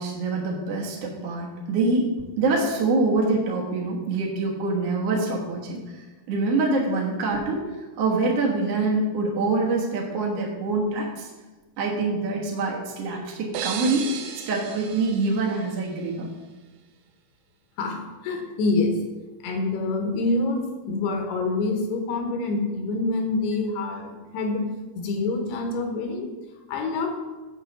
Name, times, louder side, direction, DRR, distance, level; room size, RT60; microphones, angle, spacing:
voice 1, 0.0-7.6 8.0-11.3 11.8-14.1 14.5-16.3, right 3 dB, 65° right, -3 dB, 1.6 m, -25 dB
sound 1, 13.5-16.3, right 8 dB, 80° right, 2.6 m, -36 dB
voice 2, 17.8-19.0 19.4-24.6 25.0-26.3 26.7-27.2, left 3 dB, 90° left, 4 dB, 3.2 m, -26 dB
7.8 x 4.7 x 6.7 m, 1.2 s
omnidirectional pair, 4.6 m